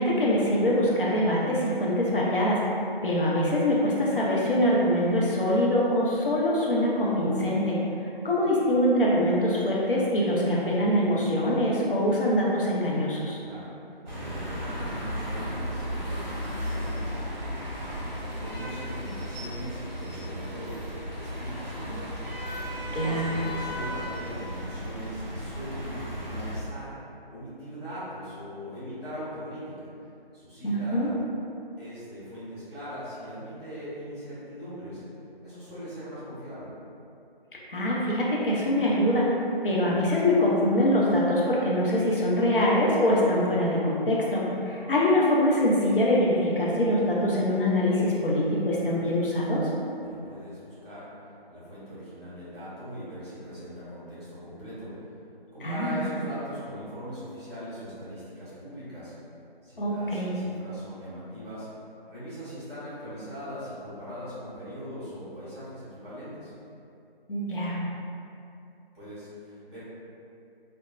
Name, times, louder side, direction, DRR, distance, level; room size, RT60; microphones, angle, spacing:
voice 1, 0.0-2.7 3.0-13.4 22.9-23.3 30.6-31.1 37.7-39.3 39.6-49.7 55.6-56.0 59.8-60.3 67.3-67.8, left 1 dB, 60° left, -5 dB, 0.6 m, -24 dB
voice 2, 13.4-13.7 14.2-17.6 18.2-20.7 21.1-22.3 22.9-26.9 27.3-29.9 30.3-31.1 31.8-35.0 35.4-36.7 50.0-51.1 51.5-54.9 55.5-59.1 59.6-61.7 62.1-66.5 68.9-69.8, equal, 25° right, -13 dB, 1.5 m, -40 dB
sound 1, 14.1-26.6, equal, 45° right, 0.7 m, -34 dB
2.9 x 2.1 x 2.3 m, 2.6 s
figure-of-eight pair, 165°, 30 cm